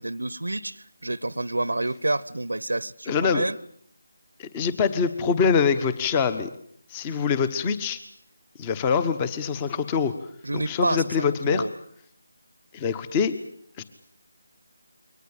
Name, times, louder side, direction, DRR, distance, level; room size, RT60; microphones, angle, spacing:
voice 1, 0.0-3.6 10.4-11.7, right 2 dB, 85° right, 0.9 m, -28 dB
voice 2, 3.1-3.4 4.4-6.5 6.9-8.0 8.6-10.1 10.5-11.6 12.7-13.4 13.8-13.9, left 6 dB, 20° left, 1.2 m, -24 dB
23.0 x 19.0 x 9.0 m
figure-of-eight pair, 160°, 0 cm